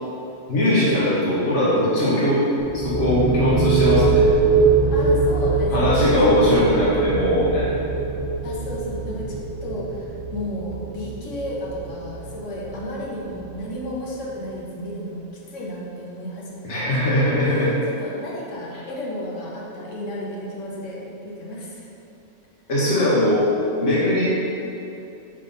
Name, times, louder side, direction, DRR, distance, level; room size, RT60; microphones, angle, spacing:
voice 1, 0.5-2.4 2.7-4.2 5.7-7.7 16.6-17.7 22.7-23.5 23.8-24.3, left 1 dB, 70° left, -8 dB, 1.5 m, -20 dB
sound 1, 2.6-14.1, right 3 dB, 35° right, 0.6 m, -23 dB
voice 2, 4.9-6.6 8.4-17.0 17.9-21.9, left 1 dB, 85° left, -4 dB, 1.4 m, -33 dB
5.3 x 4.2 x 5.4 m, 2.8 s
omnidirectional pair, 1.3 m